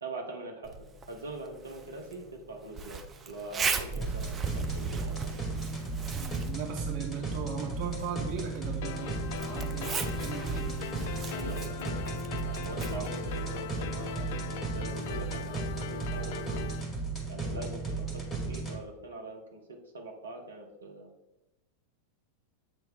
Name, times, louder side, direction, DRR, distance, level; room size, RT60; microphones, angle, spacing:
voice 1, 0.0-3.0 3.3-5.4 11.3-16.7 17.3-18.2 18.5-19.6 19.9-21.1, right 2 dB, 70° right, 1 dB, 1.2 m, -43 dB
Zipper (clothing), 0.6-14.2, right 5 dB, 20° right, 0.6 m, -39 dB
sound 1, 4.0-18.8, right 3 dB, 15° left, 1.6 m, -35 dB
voice 2, 6.1-10.8, right 6 dB, 45° right, 1 dB, 1.0 m, -38 dB
sound 2, 8.8-16.8, left 10 dB, 50° left, 0.4 m, -40 dB
7.6 x 3.1 x 5.2 m, 0.93 s
figure-of-eight pair, 90°, 0 cm